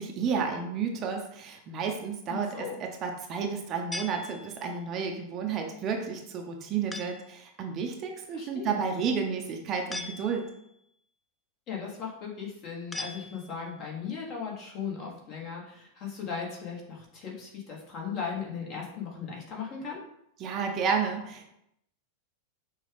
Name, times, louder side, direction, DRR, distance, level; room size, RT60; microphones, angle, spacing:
voice 1, 0.0-10.5 20.4-21.4, right 6 dB, 30° right, 2 dB, 0.6 m, -31 dB
voice 2, 2.3-2.8 8.3-8.9 11.7-20.0, left 6 dB, 35° left, -2 dB, 1.3 m, -37 dB
sound 1, 3.9-4.9 6.9-7.4 9.9-10.7 12.9-13.8, left 2 dB, 10° left, 0.3 m, -41 dB
5.9 x 2.3 x 3.4 m, 0.78 s
figure-of-eight pair, 90°, 0 cm